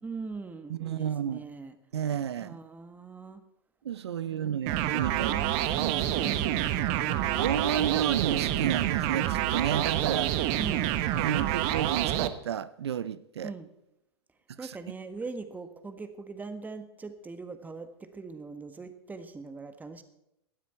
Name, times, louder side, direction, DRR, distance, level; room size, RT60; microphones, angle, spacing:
voice 1, 0.0-1.7 2.4-3.4 4.2-4.5 5.2-5.6 6.2-7.3 10.6-10.9 13.4-13.7 14.6-20.0, right 4 dB, 10° right, 1.6 m, -41 dB
voice 2, 0.7-1.4 1.9-2.6 3.8-6.4 7.1-10.4 11.1-13.5 14.6-14.8, right 9 dB, 80° right, 0.7 m, -32 dB
sound 1, 4.7-12.3, right 12 dB, 45° right, 1.2 m, -28 dB
18.5 x 12.5 x 4.5 m
hypercardioid pair, 105°, 14 cm